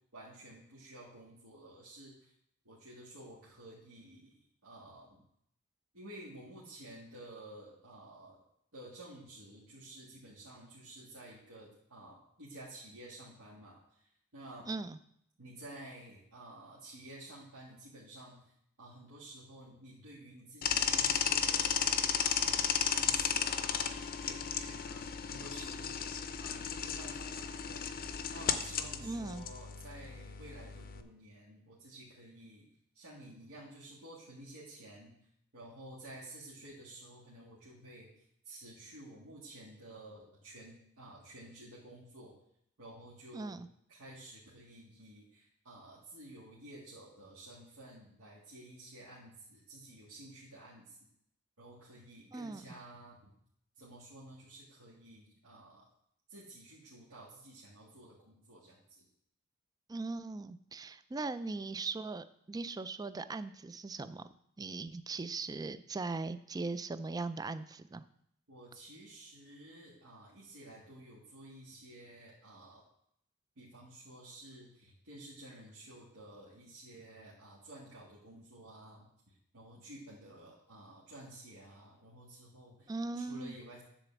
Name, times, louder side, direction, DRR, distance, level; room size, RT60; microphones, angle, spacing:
voice 1, 0.1-2.3 2.6-5.2 5.9-8.4 8.7-14.7 15.4-18.5 18.8-22.6 22.9-26.1 26.4-27.9 28.3-32.7 32.9-35.1 35.5-38.1 38.4-42.3 42.8-43.6 43.9-51.0 51.6-53.3 53.8-55.9 56.3-59.1 68.5-72.8 73.6-83.8, right 1 dB, 75° right, -7 dB, 2.2 m, -52 dB
voice 2, 14.7-15.0 29.0-29.4 43.3-43.7 52.3-52.6 59.9-64.2 64.6-68.0 82.9-83.6, right 3 dB, 15° right, 13 dB, 0.3 m, -39 dB
sound 1, 20.6-31.0, left 7 dB, 40° left, 0.6 m, -34 dB
10.0 x 4.1 x 7.0 m, 0.73 s
head